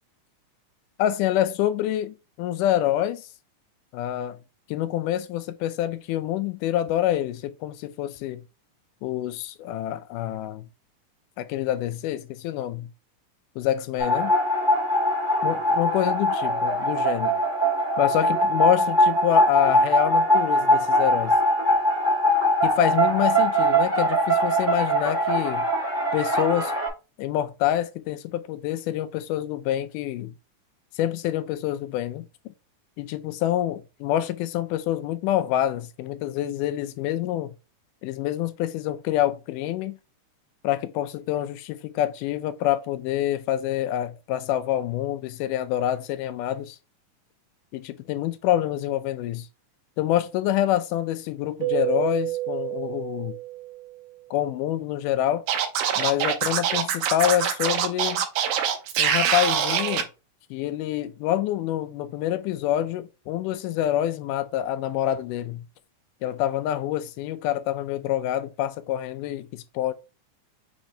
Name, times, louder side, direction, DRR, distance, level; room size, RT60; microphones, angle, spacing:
voice 1, 1.0-3.3 3.9-4.4 4.7-8.4 9.0-10.7 11.4-12.9 13.6-14.3 15.4-17.4 18.0-21.4 22.6-25.7 26.1-26.7 27.2-30.3 31.0-32.3 33.0-37.6 38.0-40.0 40.6-46.8 47.7-49.5 50.0-53.4 54.3-55.4 56.0-58.3 59.0-60.1 60.5-65.7 66.2-69.9, left 12 dB, 85° left, 2.1 m, -26 dB
sound 1, 14.0-26.9, equal, 30° right, 0.9 m, -22 dB
Keyboard (musical), 51.6-54.1, right 17 dB, 70° right, 2.0 m, -29 dB
Scratching (performance technique), 55.5-60.0, right 8 dB, 85° right, 2.3 m, -24 dB
6.1 x 3.2 x 2.7 m
omnidirectional pair, 3.6 m